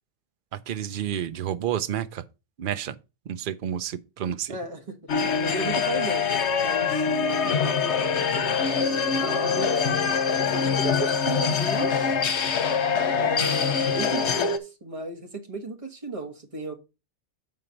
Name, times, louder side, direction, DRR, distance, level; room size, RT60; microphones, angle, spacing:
voice 1, 0.5-2.2 2.6-2.9 3.3-4.6, right 10 dB, 55° right, 0.7 m, -30 dB
voice 2, 4.5-8.7 9.1-9.9 10.5-12.2 13.2-16.7, right 1 dB, 30° right, 1.3 m, -35 dB
sound 1, 5.1-14.6, left 6 dB, 75° left, 1.1 m, -24 dB
7.6 x 4.4 x 5.2 m
omnidirectional pair, 1.2 m